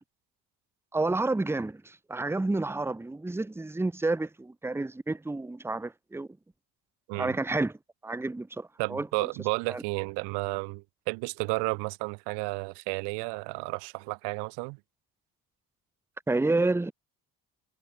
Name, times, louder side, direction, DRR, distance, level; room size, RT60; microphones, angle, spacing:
voice 1, 0.9-6.3 7.1-7.7 8.0-9.3 9.7-9.8 16.3-16.9, right 2 dB, 5° right, 0.9 m, -30 dB
voice 2, 8.8-14.8, right 32 dB, 90° right, 1.1 m, -32 dB
cardioid pair, 95°, 39 cm